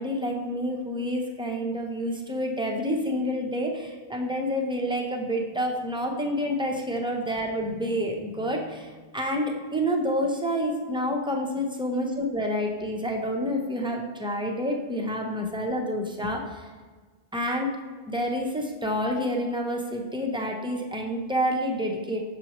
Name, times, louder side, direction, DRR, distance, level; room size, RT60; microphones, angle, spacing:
voice 1, 0.0-16.6 17.3-17.7 18.1-22.2, equal, 5° right, 1 dB, 0.4 m, -28 dB
6.3 x 6.1 x 3.0 m, 1.4 s
omnidirectional pair, 1.2 m